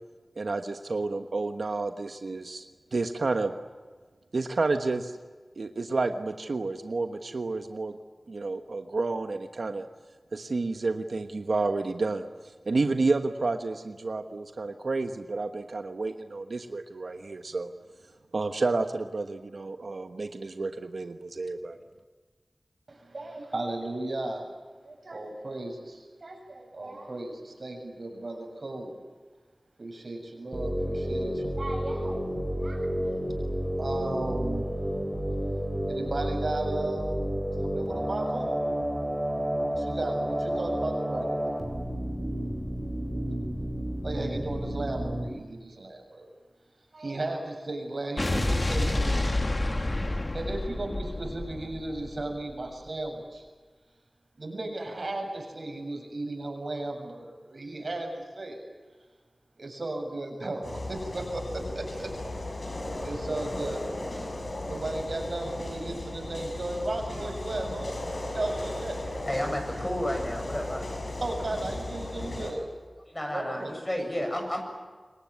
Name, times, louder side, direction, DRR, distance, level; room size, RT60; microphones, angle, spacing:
voice 1, 0.4-3.5 4.3-5.2 5.6-8.0 8.3-9.9 10.3-12.3 12.6-17.7 18.3-21.8, right 3 dB, 85° right, 7 dB, 1.3 m, -30 dB
voice 2, 22.9-24.5 24.8-28.9 29.8-32.2 32.6-32.9 33.8-34.7 35.9-37.3 37.6-38.5 39.8-41.7 44.0-46.3 46.9-49.4 50.0-50.1 50.3-53.5 54.4-58.6 59.6-62.1 63.0-63.9 64.7-68.0 68.3-69.0 71.2-72.7 73.3-73.7, right 2 dB, 65° right, 3 dB, 7.1 m, -35 dB
sound 1, 30.5-45.3, equal, 10° right, 5.3 m, -31 dB
Explosion, 48.2-52.5, left 2 dB, 40° left, 1.5 m, -29 dB
sound 2, 60.6-72.5, left 2 dB, 70° left, 6.5 m, -36 dB
voice 3, 69.3-70.8 73.0-74.6, equal, 25° left, 3 dB, 7.6 m, -31 dB
26.5 x 22.5 x 9.6 m, 1.4 s
wide cardioid pair, 60°, 0 cm